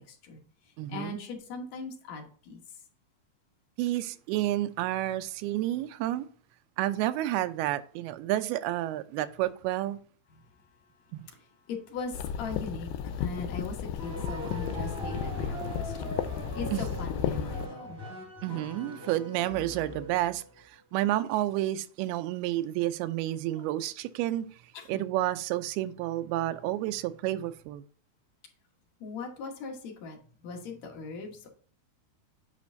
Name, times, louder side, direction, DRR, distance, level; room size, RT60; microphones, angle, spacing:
voice 1, 0.1-0.4 0.9-2.6 11.7-18.0 24.7-25.0 29.0-30.2 30.4-31.5, left 4 dB, 60° left, 2.0 m, -40 dB
voice 2, 0.8-1.2 3.8-6.3 6.8-10.0 11.1-11.2 16.7-16.9 18.4-24.5 24.9-27.8, right 14 dB, 85° right, 2.5 m, -30 dB
sound 1, 12.1-17.7, left 8 dB, 85° left, 2.4 m, -34 dB
sound 2, 14.0-20.5, left 1 dB, 20° right, 3.1 m, -40 dB
8.4 x 5.3 x 2.6 m
omnidirectional pair, 4.5 m